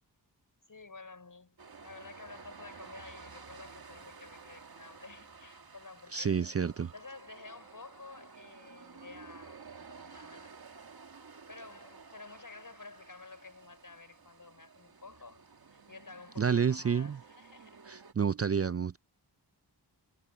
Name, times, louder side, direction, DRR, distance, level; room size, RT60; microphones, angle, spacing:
voice 1, 0.7-1.6 1.8-6.4 6.9-10.5 11.2-15.4 15.7-17.8, left 3 dB, 50° left, 5.7 m, -51 dB
sound 1, 1.6-18.1, right 5 dB, 60° right, 1.9 m, -53 dB
voice 2, 6.1-6.9 16.4-17.2 17.9-19.0, right 6 dB, 35° right, 0.5 m, -29 dB
wide cardioid pair, 70°, 41 cm